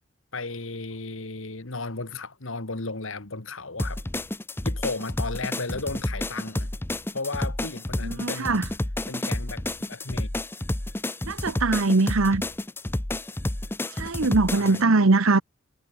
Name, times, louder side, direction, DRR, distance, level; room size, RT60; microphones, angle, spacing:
voice 1, 0.3-4.0 4.6-6.7 7.1-8.6 9.1-9.6 9.9-10.3 14.6-14.9, left 3 dB, 75° left, 2.1 m, -34 dB
sound 1, 3.8-14.8, left 1 dB, 10° left, 0.6 m, -30 dB
voice 2, 8.0-8.6 11.2-12.4 13.9-15.4, right 3 dB, 90° right, 1.0 m, -21 dB
head